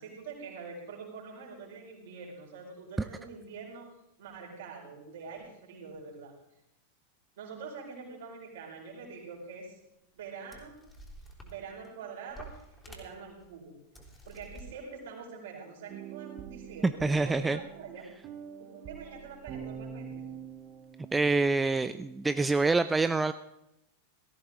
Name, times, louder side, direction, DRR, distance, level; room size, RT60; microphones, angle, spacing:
voice 1, 0.0-3.9 4.2-6.3 7.4-9.8 10.1-10.8 11.4-13.8 14.2-18.1 18.6-20.3, right 5 dB, 55° right, 0 dB, 4.4 m, -45 dB
sound 1, 9.4-9.5 10.2-10.3 10.5-11.9 12.3-13.5 13.9-14.7, right 1 dB, 10° left, 3.4 m, -50 dB
sound 2, 15.9-21.3, right 8 dB, 35° right, 1.1 m, -45 dB
voice 2, 16.8-17.6 21.1-23.3, right 3 dB, 10° right, 12 dB, 0.4 m, -26 dB
17.5 x 14.0 x 3.7 m, 0.85 s
figure-of-eight pair, 90°, 0 cm